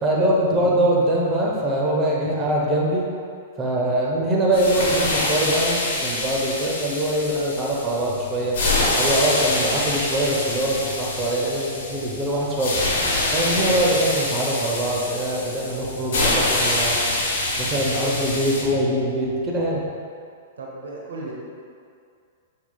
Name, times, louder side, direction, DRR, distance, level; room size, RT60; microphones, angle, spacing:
voice 1, 0.0-3.1 3.6-8.6 9.0-12.7 13.3-17.0 17.6-19.8, right 1 dB, 25° right, -3 dB, 0.8 m, -23 dB
sound 1, 4.5-18.6, left 2 dB, 60° left, 1.1 m, -25 dB
sound 2, 8.0-19.9, left 4 dB, 45° left, 0.5 m, -41 dB
voice 2, 20.6-21.3, right 2 dB, 75° right, -3 dB, 0.9 m, -38 dB
6.0 x 3.7 x 2.3 m, 2.3 s
hypercardioid pair, 110°, 0 cm